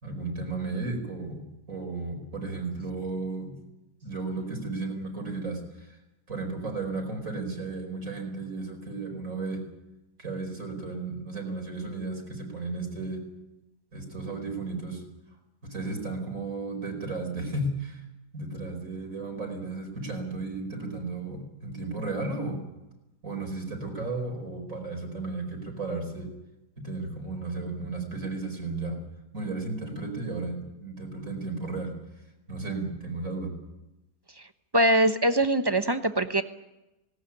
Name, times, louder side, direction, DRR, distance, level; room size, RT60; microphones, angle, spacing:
voice 1, 0.0-1.4 1.7-3.5 4.0-5.9 6.3-9.6 10.2-13.2 13.9-15.0 15.6-18.0 18.3-22.6 23.2-26.3 26.8-29.0 29.3-31.9 32.5-33.6, right 3 dB, 55° right, 3 dB, 5.2 m, -34 dB
voice 2, 34.7-36.4, right 1 dB, 20° right, 9 dB, 0.7 m, -22 dB
18.5 x 18.5 x 9.9 m, 0.96 s
omnidirectional pair, 1.7 m